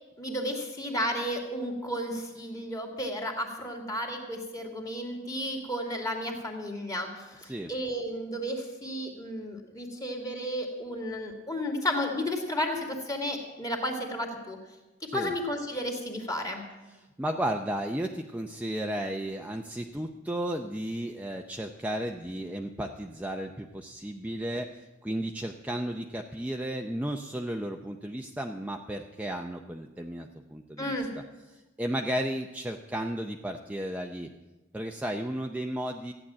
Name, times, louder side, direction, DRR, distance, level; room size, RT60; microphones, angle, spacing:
voice 1, 0.2-14.6 15.1-16.7 30.8-31.1, equal, 20° left, 2 dB, 2.2 m, -33 dB
voice 2, 17.2-30.9 31.5-34.3 34.7-36.1, right 1 dB, 10° right, 2 dB, 0.5 m, -34 dB
14.5 x 9.8 x 7.4 m, 1.1 s
head